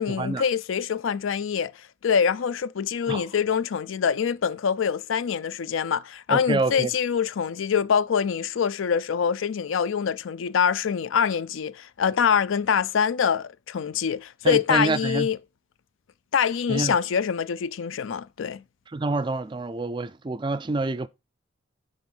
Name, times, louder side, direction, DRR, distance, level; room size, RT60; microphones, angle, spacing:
voice 1, 0.0-1.7 2.0-15.4 16.3-18.6, left 7 dB, 75° left, 0.4 m, -25 dB
voice 2, 6.3-6.9 14.4-15.3 16.7-16.9 18.9-21.1, right 3 dB, 25° right, 0.3 m, -27 dB
10.5 x 3.5 x 5.4 m
head